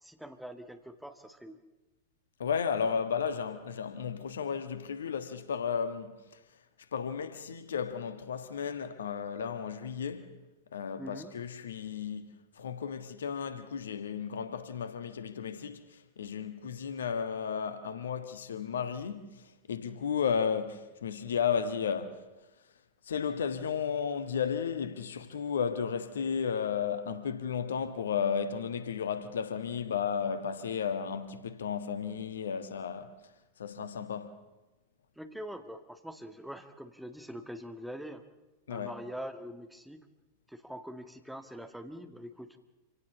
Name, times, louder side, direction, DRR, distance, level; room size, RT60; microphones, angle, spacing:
voice 1, 0.0-1.6 11.0-11.3 35.2-38.2 38.7-40.1 40.5-42.6, equal, ahead, 1.6 m, -44 dB
voice 2, 2.4-6.2 6.9-10.3 10.7-22.2 23.1-33.1 33.6-34.4 38.7-39.0, left 7 dB, 65° left, 1.4 m, -33 dB
27.0 x 17.0 x 7.1 m
figure-of-eight pair, 90°, 0 cm